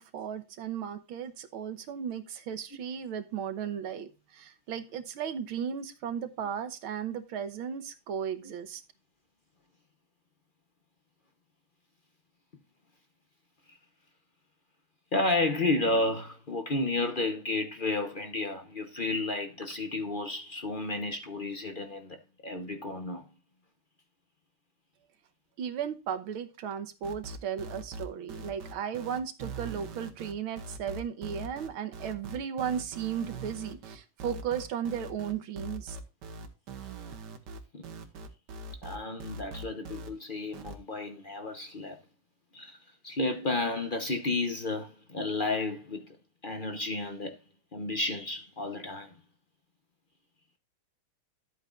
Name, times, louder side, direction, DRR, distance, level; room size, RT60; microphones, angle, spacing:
voice 1, 0.0-8.8 25.6-36.0, right 8 dB, 85° right, 1.8 m, -35 dB
voice 2, 15.1-22.2 22.4-23.2 37.7-37.9 38.8-42.0 42.5-42.8 43.0-46.0 46.4-47.4 47.7-49.1, left 2 dB, 40° left, 0.7 m, -32 dB
sound 1, 27.0-40.1 40.5-40.8, right 2 dB, 60° right, 1.7 m, -42 dB
12.5 x 8.4 x 2.5 m
omnidirectional pair, 2.3 m